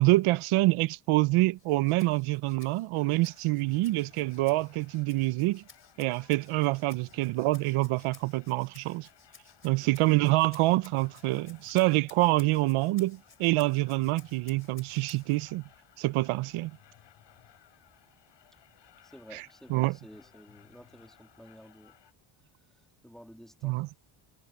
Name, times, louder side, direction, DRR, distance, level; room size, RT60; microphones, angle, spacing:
voice 1, 0.0-5.6 6.0-9.1 9.6-15.6 16.0-16.7 19.3-19.4 19.7-19.9 23.6-23.9, right 19 dB, 85° right, 0.7 m, -26 dB
Rattle (instrument), 1.6-15.4, left 5 dB, 25° left, 3.3 m, -57 dB
sound 1, 2.9-22.1, left 11 dB, 60° left, 7.2 m, -60 dB
voice 2, 19.0-22.0 22.6-23.8, equal, ahead, 3.2 m, -52 dB
cardioid pair, 130°, 49 cm